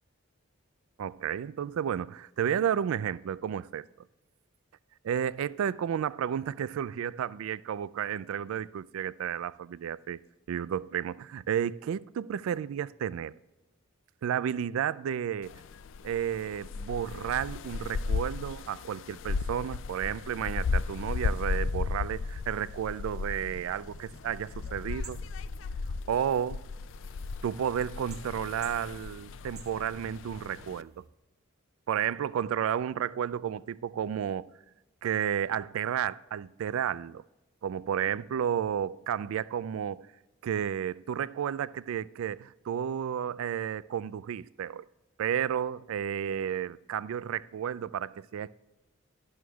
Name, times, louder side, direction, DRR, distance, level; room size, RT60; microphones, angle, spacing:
voice 1, 1.0-3.8 5.0-10.2 10.5-13.3 14.2-15.6 16.0-25.2 26.1-26.6 27.4-31.0 31.9-34.5 35.0-37.2 37.6-40.1 40.4-44.8 45.2-48.6, right 9 dB, 80° right, 0.3 m, -32 dB
sound 1, 15.4-30.8, left 4 dB, 60° left, 0.4 m, -35 dB
sound 2, 20.6-28.2, right 1 dB, 5° right, 1.1 m, -57 dB
sound 3, 22.2-31.1, right 8 dB, 50° right, 0.9 m, -57 dB
12.5 x 11.0 x 2.3 m
head